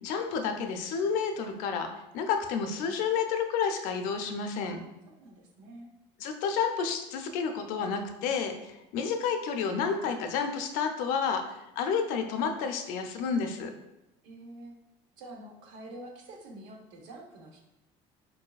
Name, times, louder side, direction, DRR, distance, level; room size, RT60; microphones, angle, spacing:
voice 1, 0.0-4.8 6.2-13.7, left 6 dB, 85° left, 5 dB, 0.5 m, -30 dB
voice 2, 5.2-5.9 14.2-14.7 15.2-17.6, right 1 dB, 90° right, 1 dB, 0.8 m, -47 dB
4.7 x 2.6 x 2.3 m, 0.93 s
cardioid pair, 170°, 13 cm